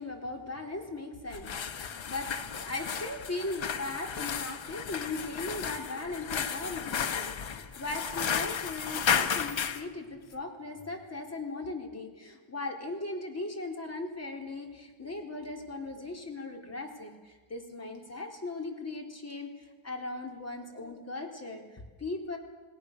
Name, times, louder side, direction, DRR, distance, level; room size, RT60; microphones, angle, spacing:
voice 1, 0.0-19.5 19.8-22.4, left 2 dB, 35° left, 3 dB, 3.8 m, -38 dB
sound 1, 1.3-9.8, left 7 dB, 85° left, 1.5 m, -33 dB
29.0 x 18.5 x 6.8 m, 1.4 s
wide cardioid pair, 135°, 45 cm